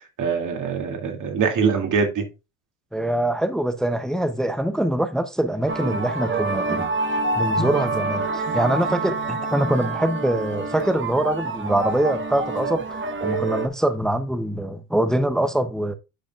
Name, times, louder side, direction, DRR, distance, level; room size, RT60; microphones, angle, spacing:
voice 1, 0.0-2.2, right 5 dB, 45° right, 2.4 m, -23 dB
voice 2, 2.9-6.9 7.4-15.9, right 1 dB, ahead, 0.5 m, -24 dB
sound 1, 5.7-13.7, right 3 dB, 30° right, 1.1 m, -27 dB
10.5 x 5.2 x 2.4 m
supercardioid pair, 100°, 42 cm